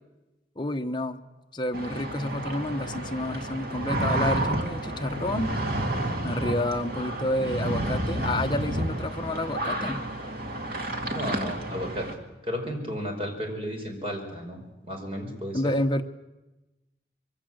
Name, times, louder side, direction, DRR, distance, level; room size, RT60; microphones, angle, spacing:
voice 1, 0.6-1.2 1.5-5.5 6.2-10.0 15.5-16.0, left 1 dB, 25° left, 5 dB, 1.1 m, -29 dB
sound 1, 1.7-12.1, right 1 dB, 50° right, 2.5 m, -30 dB
voice 2, 11.1-12.1 12.4-15.7, equal, 30° right, 3 dB, 5.3 m, -33 dB
25.5 x 23.0 x 7.9 m, 1.0 s
head